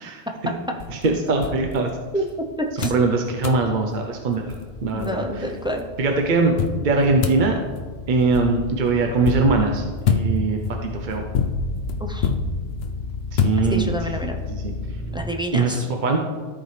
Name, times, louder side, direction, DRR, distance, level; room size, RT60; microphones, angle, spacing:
sound 1, 0.8-2.4 2.8-3.1 3.4-3.7 4.2-4.3 4.5-5.6 6.6-14.2, left 5 dB, 75° left, 0.9 m, -27 dB
voice 1, 0.9-1.9 2.8-5.2 6.0-7.6 8.1-11.2 13.3-14.2 14.5-14.7 15.5-16.2, right 3 dB, 55° right, 3 dB, 0.8 m, -22 dB
sound 2, 2.4-15.2, left 4 dB, 70° right, 2.1 m, -35 dB
voice 2, 2.6-2.9 4.9-5.9 12.0-12.3 13.7-14.4 15.1-15.8, equal, 5° right, 2 dB, 0.5 m, -28 dB
13.5 x 4.6 x 3.2 m, 1.5 s
omnidirectional pair, 1.0 m